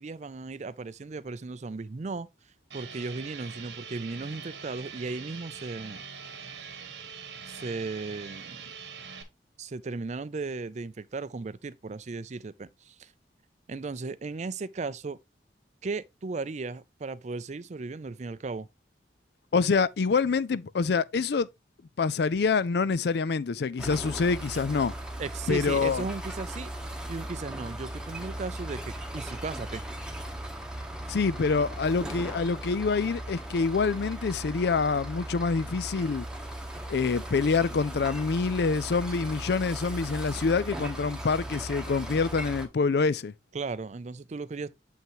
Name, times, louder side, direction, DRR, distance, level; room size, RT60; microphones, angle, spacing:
voice 1, 0.0-2.3 2.7-6.0 7.5-8.6 9.6-13.1 13.7-15.2 15.8-18.7 25.2-26.7 27.1-29.8 43.5-44.7, right 3 dB, 40° right, 0.4 m, -36 dB
sound 1, 2.7-9.2, right 6 dB, 80° right, 1.3 m, -43 dB
voice 2, 19.5-21.5 22.0-24.9 25.5-26.0 31.1-36.3 36.9-43.3, left 4 dB, 65° left, 0.4 m, -26 dB
sound 2, 23.8-42.7, right 1 dB, 5° right, 1.0 m, -38 dB
7.4 x 5.7 x 3.0 m
head